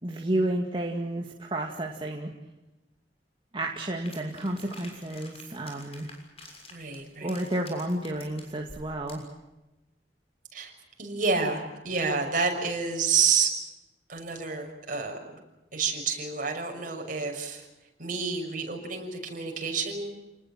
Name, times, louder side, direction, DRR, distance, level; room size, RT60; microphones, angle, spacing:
voice 1, 0.0-2.3 3.5-6.1 7.2-9.2, right 1 dB, 30° right, 1 dB, 2.2 m, -31 dB
sound 1, 4.1-9.3, left 2 dB, 35° left, 6.6 m, -49 dB
voice 2, 6.7-7.4 10.5-10.7 11.0-13.5 14.1-15.3 15.7-17.6 18.0-20.1, right 5 dB, 50° right, 3 dB, 6.4 m, -29 dB
29.5 x 20.0 x 7.5 m, 1.0 s
head